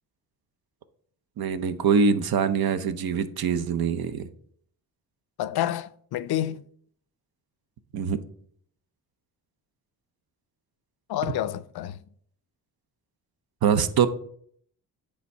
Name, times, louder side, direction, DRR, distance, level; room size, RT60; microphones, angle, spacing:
voice 1, 1.4-4.3 7.9-8.2 13.6-14.1, right 6 dB, 65° right, 0.7 m, -23 dB
voice 2, 5.4-6.6 11.1-12.0, left 12 dB, 70° left, 0.5 m, -29 dB
8.0 x 3.5 x 5.4 m
cardioid pair, 85°, 40 cm